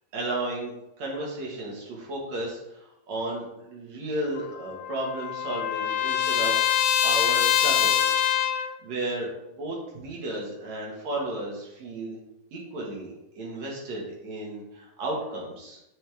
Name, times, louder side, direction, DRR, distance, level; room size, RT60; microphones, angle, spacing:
voice 1, 0.1-6.6 7.0-8.1 8.5-12.2 12.5-15.8, right 1 dB, 60° right, -3 dB, 2.7 m, -33 dB
Trumpet, 4.4-8.7, left 10 dB, 80° left, 1.9 m, -24 dB
8.5 x 5.0 x 3.4 m, 0.88 s
omnidirectional pair, 3.8 m